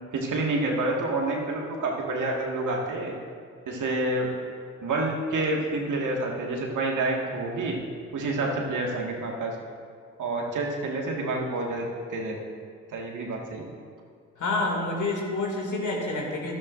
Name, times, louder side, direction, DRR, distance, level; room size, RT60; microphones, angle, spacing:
voice 1, 0.1-3.1 3.7-4.3 4.8-7.8 8.1-9.5 10.2-11.8 12.1-12.4 12.9-13.7, right 2 dB, 55° right, -1 dB, 2.0 m, -28 dB
voice 2, 14.4-16.5, left 2 dB, 55° left, -1 dB, 2.6 m, -28 dB
12.5 x 11.5 x 2.6 m, 2.2 s
hypercardioid pair, 45°, 36 cm